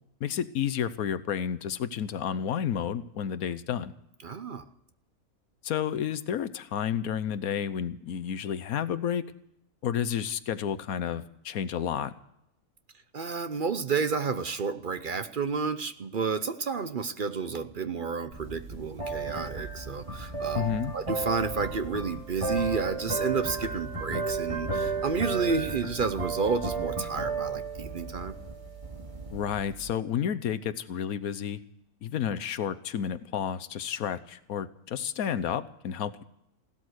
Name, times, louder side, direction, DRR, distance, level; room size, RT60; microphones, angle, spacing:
voice 1, 0.2-3.9 5.6-9.2 9.8-12.1 20.5-20.9 29.3-31.6 32.0-36.2, left 8 dB, 75° left, 13 dB, 1.3 m, -31 dB
voice 2, 4.2-4.6 13.1-28.3, right 5 dB, 45° right, 11 dB, 0.7 m, -31 dB
sound 1, 18.3-29.9, right 3 dB, 20° right, 2.3 m, -34 dB
16.5 x 12.5 x 6.3 m, 0.78 s
omnidirectional pair, 1.5 m